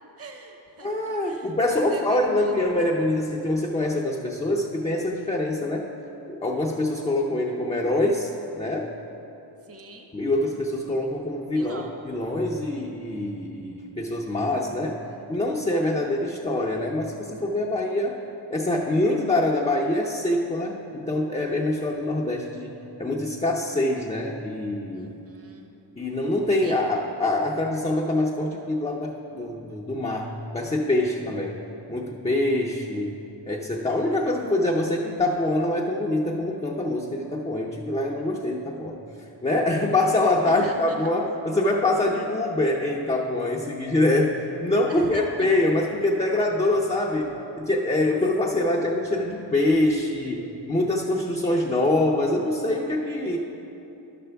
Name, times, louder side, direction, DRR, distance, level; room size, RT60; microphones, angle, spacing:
voice 1, 0.2-2.7 9.6-10.1 11.5-12.0 12.8-12.9 24.9-25.7 26.6-26.8 40.4-41.1 44.9-45.5, right 1 dB, 30° right, 3 dB, 0.8 m, -41 dB
voice 2, 0.8-5.9 6.3-8.9 10.1-15.0 15.3-18.2 18.5-25.1 26.0-31.6 31.9-33.1 33.5-39.0 39.4-53.4, left 1 dB, 15° left, -2 dB, 0.5 m, -25 dB
11.0 x 6.9 x 3.4 m, 3.0 s
cardioid pair, 80°, 44 cm